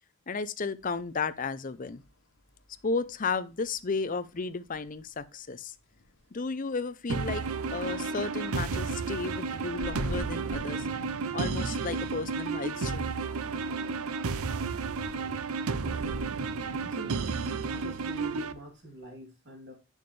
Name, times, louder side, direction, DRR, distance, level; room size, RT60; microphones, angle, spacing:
voice 1, 0.3-2.0 2.8-5.7 6.3-7.4 7.7-10.9 11.3-13.2, left 4 dB, 35° left, 0.6 m, -33 dB
sound 1, 0.8-19.1, equal, 60° left, 2.0 m, -50 dB
sound 2, 7.1-18.5, right 4 dB, 75° right, 0.6 m, -32 dB
voice 2, 16.7-19.7, right 1 dB, 55° right, 3.1 m, -45 dB
8.6 x 6.4 x 3.2 m
head